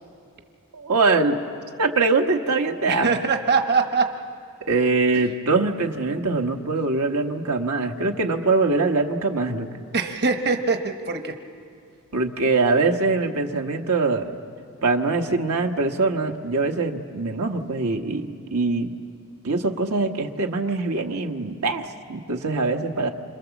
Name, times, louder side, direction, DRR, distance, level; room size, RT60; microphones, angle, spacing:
voice 1, 0.7-1.4 1.8-3.1 4.7-9.7 12.1-14.3 14.8-18.9 19.4-23.1, right 3 dB, 85° right, 3 dB, 1.4 m, -23 dB
voice 2, 2.9-4.1 5.1-5.2 9.9-11.4, right 4 dB, 50° right, 5 dB, 1.2 m, -23 dB
27.0 x 27.0 x 7.2 m, 2.5 s
head